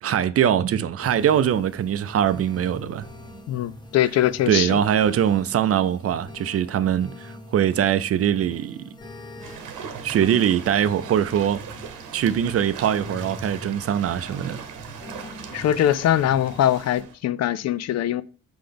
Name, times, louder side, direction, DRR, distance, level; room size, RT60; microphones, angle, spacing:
voice 1, 0.0-3.1 4.5-8.9 10.0-11.6 12.1-14.6, right 9 dB, 50° right, 0.5 m, -22 dB
sound 1, 1.0-17.0, left 1 dB, 15° left, 1.0 m, -43 dB
voice 2, 3.5-4.8 15.5-18.2, left 11 dB, 60° left, 0.4 m, -22 dB
sound 2, 9.4-17.1, right 7 dB, 90° right, 1.0 m, -39 dB
5.7 x 5.1 x 3.4 m
cardioid pair, 90°, 30 cm